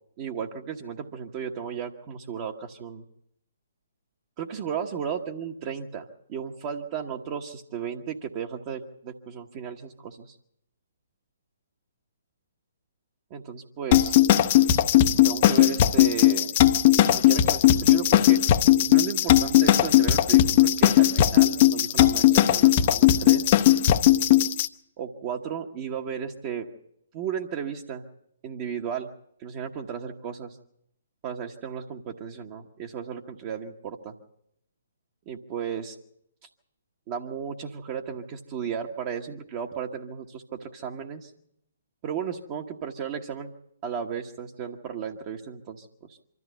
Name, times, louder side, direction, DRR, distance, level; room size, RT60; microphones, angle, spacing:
voice 1, 0.2-3.0 4.4-10.4 13.3-14.1 15.2-16.5 16.9-18.4 18.9-23.5 25.0-26.7 27.1-28.0 28.4-29.1 29.4-30.6 31.2-34.1 35.3-35.9 37.1-41.3 42.0-43.5 43.8-46.2, right 7 dB, 35° right, 1 dB, 1.1 m, -34 dB
sound 1, 13.9-24.7, left 13 dB, 40° left, 0.7 m, -18 dB
24.5 x 13.5 x 8.0 m, 0.78 s
figure-of-eight pair, 135°, 0 cm